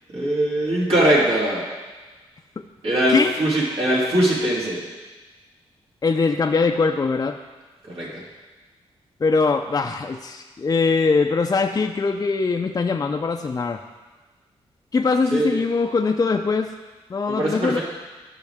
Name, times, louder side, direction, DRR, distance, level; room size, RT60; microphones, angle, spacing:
voice 1, 0.1-1.6 2.8-4.8 7.8-8.2 15.3-15.6 17.3-17.8, right 1 dB, 70° right, -6 dB, 3.1 m, -21 dB
voice 2, 6.0-7.4 9.2-13.8 14.9-16.7 17.1-17.8, left 4 dB, 35° left, 3 dB, 0.5 m, -21 dB
14.0 x 5.5 x 3.6 m, 1.3 s
cardioid pair, 75°, 11 cm